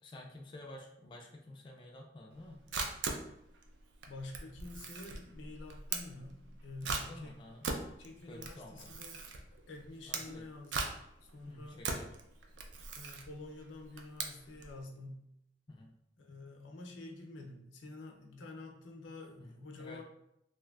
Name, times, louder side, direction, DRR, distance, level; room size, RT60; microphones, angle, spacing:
voice 1, 0.0-2.6 6.8-7.7 8.2-9.1 10.1-10.5 11.5-12.1 15.7-15.9 19.4-20.0, left 1 dB, 25° left, 0 dB, 0.3 m, -51 dB
Camera, 2.3-14.8, right 4 dB, 75° right, 0.4 m, -40 dB
voice 2, 4.1-7.4 8.0-9.2 9.7-10.9 11.2-11.8 12.9-15.2 16.2-20.0, left 2 dB, 80° left, 2 dB, 0.5 m, -48 dB
3.1 x 2.5 x 2.3 m, 0.81 s
head